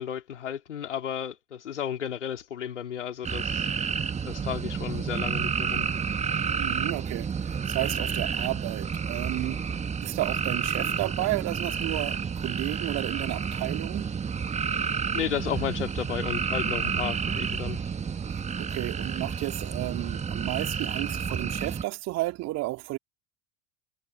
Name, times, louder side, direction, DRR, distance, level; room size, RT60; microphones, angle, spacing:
voice 1, 0.0-3.7 4.3-5.9 10.8-10.9 15.1-18.0, left 9 dB, 75° left, 3.1 m, -33 dB
sound 1, 3.2-21.8, right 6 dB, 20° right, 1.6 m, -30 dB
voice 2, 6.6-9.6 10.0-14.1 18.3-23.0, right 19 dB, 45° right, 3.3 m, -32 dB
figure-of-eight pair, 75°, 36 cm